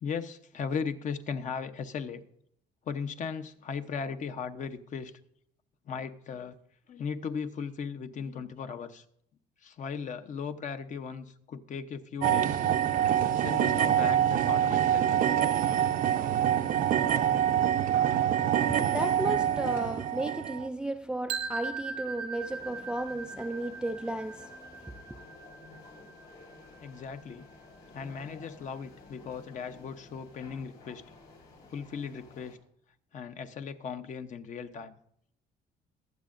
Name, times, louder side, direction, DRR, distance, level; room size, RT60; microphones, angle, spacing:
voice 1, 0.0-2.2 2.9-5.1 5.9-6.5 6.9-9.0 9.6-12.6 13.3-15.2 26.8-27.5 27.9-31.0 31.7-32.6 33.1-35.0, left 6 dB, 45° left, 0.8 m, -37 dB
sound 1, 12.2-20.7, right 10 dB, 55° right, 0.6 m, -26 dB
voice 2, 18.5-25.2, right 1 dB, 5° right, 0.3 m, -34 dB
sound 2, 21.3-27.2, right 5 dB, 90° right, 1.0 m, -40 dB
sound 3, 22.4-32.6, left 3 dB, 80° left, 4.0 m, -53 dB
21.5 x 7.5 x 2.6 m
cardioid pair, 110°, 17 cm